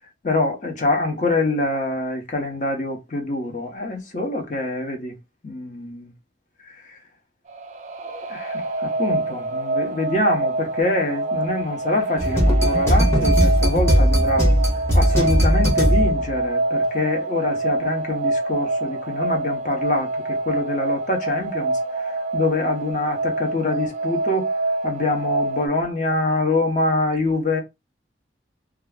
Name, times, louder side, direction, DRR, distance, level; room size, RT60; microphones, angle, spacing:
voice 1, 0.2-5.1 5.4-6.1 6.9-7.0 8.1-14.4 14.9-21.7 22.0-24.5 24.8-27.6, left 2 dB, 45° left, 0.7 m, -25 dB
sound 1, 7.5-25.7, right 2 dB, 40° right, 0.3 m, -26 dB
sound 2, 12.2-16.4, equal, 15° left, 0.8 m, -18 dB
2.4 x 2.1 x 3.4 m
head